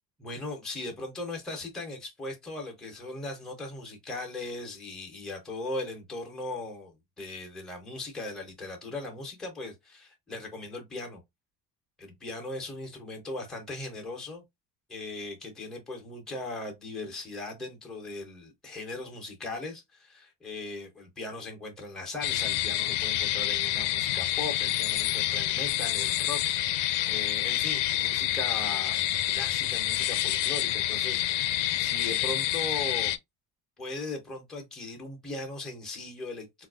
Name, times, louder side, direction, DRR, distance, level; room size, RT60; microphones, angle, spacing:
voice 1, 0.2-11.2 12.0-14.4 14.9-33.2 33.8-36.7, left 2 dB, ahead, 0.5 m, -39 dB
sound 1, 22.2-33.2, left 14 dB, 75° left, 0.5 m, -28 dB
4.1 x 2.3 x 2.3 m
cardioid pair, 180°, 42 cm